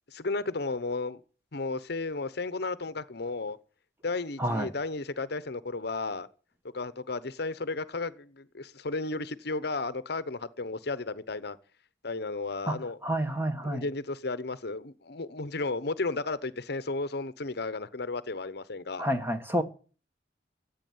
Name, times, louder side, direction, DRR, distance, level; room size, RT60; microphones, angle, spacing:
voice 1, 0.1-1.2 1.5-3.6 4.0-6.3 6.7-11.6 12.0-13.0 13.6-19.1, left 3 dB, 60° left, 0.9 m, -33 dB
voice 2, 4.4-4.7 12.7-13.8 19.0-19.6, equal, 10° right, 1.4 m, -29 dB
15.5 x 8.4 x 9.4 m
head